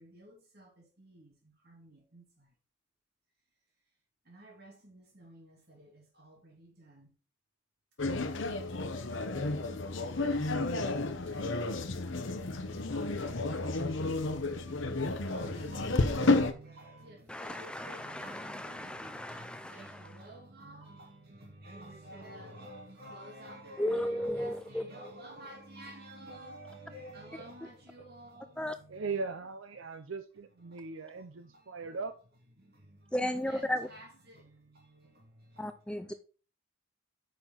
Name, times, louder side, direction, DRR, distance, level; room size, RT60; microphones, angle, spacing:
voice 1, 0.0-2.5 4.3-7.1 8.9-11.9 12.5-29.1 30.7-32.0 32.6-33.1 33.5-35.7, right 1 dB, 50° right, 3.1 m, -51 dB
sound 1, 8.0-16.5, left 2 dB, 65° left, 1.0 m, -31 dB
voice 2, 16.8-17.1 20.8-21.1 23.5-23.8 25.8-26.1 28.9-32.2, right 4 dB, 75° right, 0.6 m, -40 dB
voice 3, 17.3-20.2 23.8-24.8 28.6-28.8 33.1-33.9 35.6-36.1, left 1 dB, 5° left, 0.3 m, -35 dB
9.2 x 5.8 x 3.9 m
head